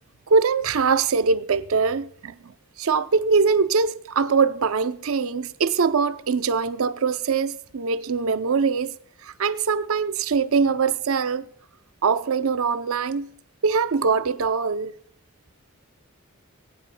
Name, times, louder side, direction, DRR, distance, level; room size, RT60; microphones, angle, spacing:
voice 1, 0.3-2.5 2.8-8.9 9.2-11.5 12.0-13.3 13.6-14.9, right 5 dB, 75° right, 0.6 m, -22 dB
24.5 x 8.6 x 2.2 m
head